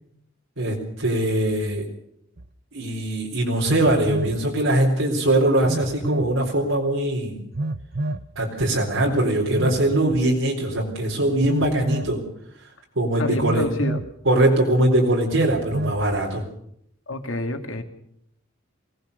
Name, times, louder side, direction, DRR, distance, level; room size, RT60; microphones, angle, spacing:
voice 1, 0.6-1.9 2.7-7.4 8.4-12.2 13.0-13.7 14.2-16.4, right 1 dB, 80° right, -2 dB, 4.0 m, -21 dB
Telephone, 2.4-2.5 3.7-4.4 5.6-6.3 7.5-8.3 9.5-10.2 11.4-12.2 13.4-14.1 15.3-16.0, right 2 dB, 50° right, 0.9 m, -28 dB
voice 2, 13.2-14.0 17.1-17.8, left 1 dB, 80° left, 5 dB, 2.7 m, -27 dB
24.5 x 18.0 x 6.8 m, 0.73 s
head